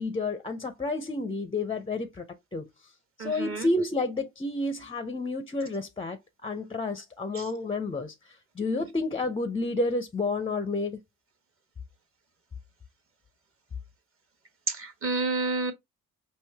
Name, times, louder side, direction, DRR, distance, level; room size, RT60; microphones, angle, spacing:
voice 1, 0.0-2.2 2.5-2.7 3.2-11.0, left 2 dB, 15° left, 0.6 m, -30 dB
voice 2, 3.2-3.7 7.3-7.5 14.7-15.7, right 3 dB, 30° right, 1.3 m, -30 dB
5.3 x 2.6 x 3.4 m
figure-of-eight pair, 50°, 41 cm